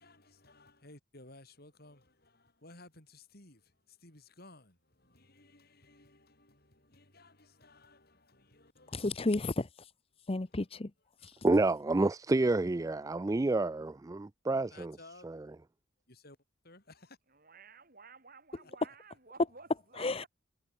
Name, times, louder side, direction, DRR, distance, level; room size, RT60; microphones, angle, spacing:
voice 1, 0.0-9.1 10.4-10.7 11.1-11.5 14.7-15.3 16.1-16.4 16.6-17.2, left 2 dB, 50° left, 7.8 m, -57 dB
voice 2, 8.9-9.9 10.3-10.9 11.2-11.4 20.0-20.2, left 2 dB, 30° left, 0.7 m, -33 dB
voice 3, 11.4-14.9 15.2-15.3, right 2 dB, 15° right, 0.3 m, -29 dB
voice 4, 17.3-20.3, right 4 dB, 45° right, 7.7 m, -54 dB
head